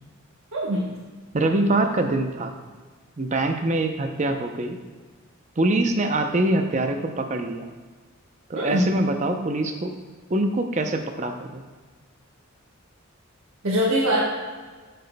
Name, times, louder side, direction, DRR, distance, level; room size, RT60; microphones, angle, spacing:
voice 1, 0.5-0.9 8.6-8.9 13.6-14.2, equal, 80° right, -5 dB, 1.2 m, -22 dB
voice 2, 1.3-2.5 3.2-4.8 5.6-7.7 8.5-9.9 10.3-11.6, right 2 dB, 35° right, 5 dB, 0.6 m, -24 dB
11.5 x 6.7 x 2.2 m, 1.4 s
head